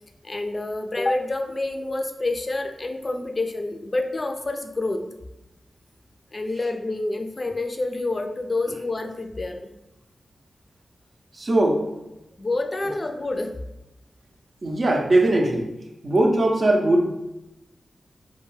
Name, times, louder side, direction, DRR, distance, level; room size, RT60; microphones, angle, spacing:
voice 1, 0.2-5.0 6.3-9.7 12.4-13.6, left 2 dB, 45° left, 4 dB, 0.4 m, -28 dB
voice 2, 11.3-11.9 14.6-15.7 16.0-17.1, right 1 dB, 55° right, 1 dB, 0.5 m, -20 dB
2.3 x 2.2 x 3.1 m, 0.92 s
cardioid pair, 40°, 0 cm